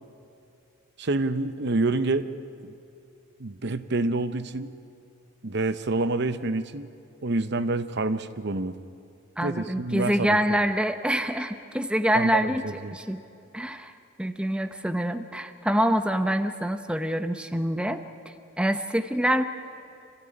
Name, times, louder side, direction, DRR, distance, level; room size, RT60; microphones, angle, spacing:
voice 1, 1.0-2.3 2.6-2.7 3.4-4.7 5.4-6.9 7.2-8.8 9.4-10.4 12.1-13.0, right 2 dB, 55° right, 11 dB, 0.8 m, -27 dB
voice 2, 9.4-12.6 12.9-13.2 13.5-13.9 14.2-18.0 18.6-19.4, equal, 5° right, 8 dB, 0.8 m, -25 dB
26.5 x 16.0 x 9.9 m, 2.7 s
head